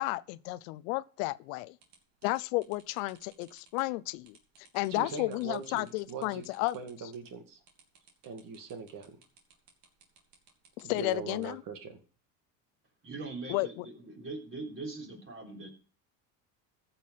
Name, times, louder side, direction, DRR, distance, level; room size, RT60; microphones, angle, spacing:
voice 1, 0.0-1.7 2.2-4.4 4.7-6.8 10.8-11.6 13.5-13.8, left 21 dB, 80° left, 0.6 m, -32 dB
sound 1, 1.8-11.5, right 5 dB, 65° right, 3.2 m, -61 dB
voice 2, 4.9-6.5 6.7-7.6 8.2-9.2 10.8-12.0, right 5 dB, 50° right, 2.1 m, -41 dB
voice 3, 13.0-15.7, right 3 dB, 30° right, 3.7 m, -41 dB
14.5 x 6.0 x 5.6 m
supercardioid pair, 90°, 41 cm